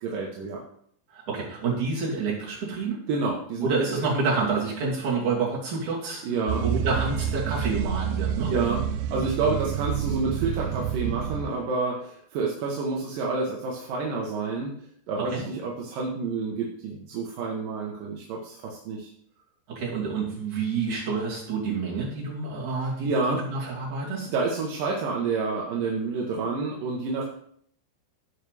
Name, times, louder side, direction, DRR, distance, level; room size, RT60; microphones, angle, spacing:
voice 1, 0.0-0.6 3.1-4.0 6.2-6.6 8.5-8.8 9.1-14.7 15.1-19.1 23.0-23.4 24.3-27.3, right 4 dB, 65° right, -2 dB, 2.4 m, -29 dB
voice 2, 1.1-3.0 3.6-6.2 6.6-8.5 15.2-15.5 19.7-24.3, right 4 dB, 50° right, -4 dB, 3.8 m, -28 dB
sound 1, 6.5-11.5, right 9 dB, 85° right, 2.8 m, -28 dB
16.0 x 5.7 x 3.4 m, 0.64 s
omnidirectional pair, 5.0 m